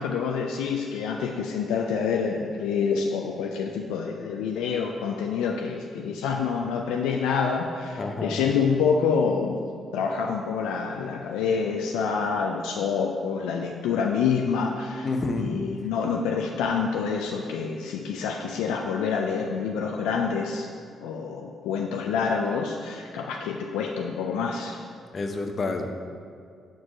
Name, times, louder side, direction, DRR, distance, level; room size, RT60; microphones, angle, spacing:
voice 1, 0.0-9.6 9.9-20.7 21.0-24.8, left 6 dB, 80° left, 1 dB, 0.3 m, -27 dB
voice 2, 8.0-8.4 15.0-15.6 25.1-25.9, left 3 dB, 45° left, 5 dB, 0.7 m, -29 dB
4.6 x 4.4 x 5.9 m, 2.2 s
hypercardioid pair, 50°, 0 cm